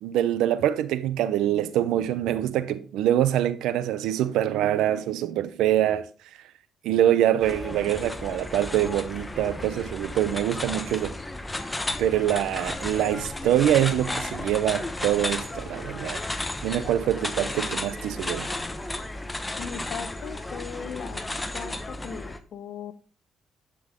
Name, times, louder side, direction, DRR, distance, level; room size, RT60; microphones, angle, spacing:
voice 1, 0.0-6.1 6.8-11.2 12.0-16.2 16.6-18.5, right 11 dB, 90° right, 0.7 m, -24 dB
sound 1, 7.4-22.4, left 2 dB, 15° left, 1.0 m, -33 dB
voice 2, 19.6-21.2 21.5-22.9, left 7 dB, 70° left, 0.9 m, -38 dB
11.5 x 6.0 x 3.7 m
cardioid pair, 90°, 0 cm